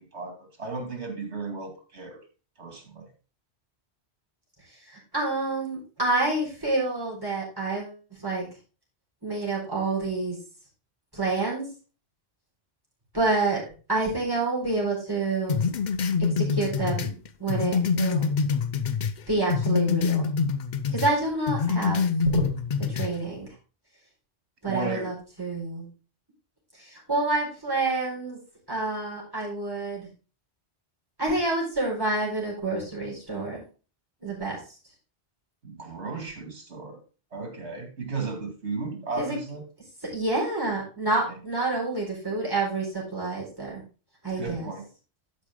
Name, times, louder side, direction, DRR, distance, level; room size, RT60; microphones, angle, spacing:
voice 1, 0.0-2.2 2.6-3.1 24.7-25.1 35.6-37.0 37.3-39.6 44.4-44.8, right 3 dB, 85° right, 4 dB, 2.6 m, -35 dB
voice 2, 4.7-8.4 9.2-10.4 11.1-11.7 13.1-13.6 13.9-15.6 16.2-18.3 19.3-20.3 20.9-22.6 22.9-23.5 24.6-25.9 26.7-28.4 28.7-30.1 31.2-33.6 34.2-34.6 39.2-39.4 40.1-43.8 44.2-44.7, right 2 dB, 20° right, -4 dB, 4.3 m, -28 dB
sound 1, 15.5-19.2 19.5-21.1 21.5-23.1, left 5 dB, 50° left, 0.6 m, -25 dB
12.0 x 5.3 x 3.6 m, 0.35 s
omnidirectional pair, 1.1 m